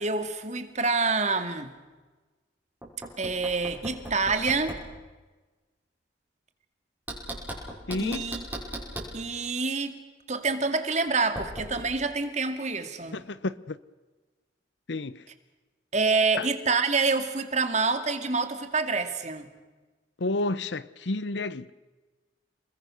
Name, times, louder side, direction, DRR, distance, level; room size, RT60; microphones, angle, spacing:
voice 1, 0.0-1.7 3.2-4.8 8.0-8.4 9.1-9.9 10.3-13.2 15.9-19.5, right 4 dB, 40° right, 2.2 m, -27 dB
Knock, 2.8-4.9 7.1-9.2 11.4-11.9, right 1 dB, 10° right, 5.6 m, -38 dB
voice 2, 7.9-8.3 13.1-13.8 14.9-15.2 16.4-16.5 20.2-21.7, left 2 dB, 75° left, 0.9 m, -31 dB
29.5 x 21.0 x 6.4 m
head